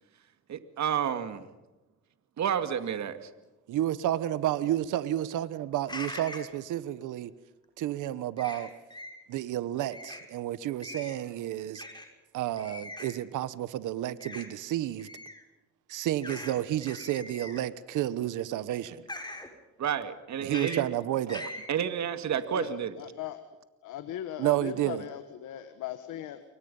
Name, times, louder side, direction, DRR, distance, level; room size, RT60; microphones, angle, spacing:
voice 1, 0.5-1.5 2.4-3.3 19.8-20.9 21.7-22.9, right 8 dB, 65° right, 2.3 m, -30 dB
voice 2, 3.7-7.3 7.8-8.7 9.3-11.8 12.3-15.1 15.9-19.0 20.4-21.5 24.4-25.1, right 13 dB, 85° right, 1.2 m, -31 dB
sound 1, 5.9-6.5 8.4-9.1 9.9-10.2 10.8-11.2 11.7-12.0 12.6-13.2 14.2-14.5 15.0-15.4 16.2-16.5 16.8-17.7 19.1-19.5 20.5-20.8 21.3-21.7, left 2 dB, 15° left, 6.0 m, -41 dB
voice 3, 22.5-23.4 23.8-26.4, left 11 dB, 90° left, 1.6 m, -39 dB
30.0 x 23.5 x 5.6 m
cardioid pair, 90°, 30 cm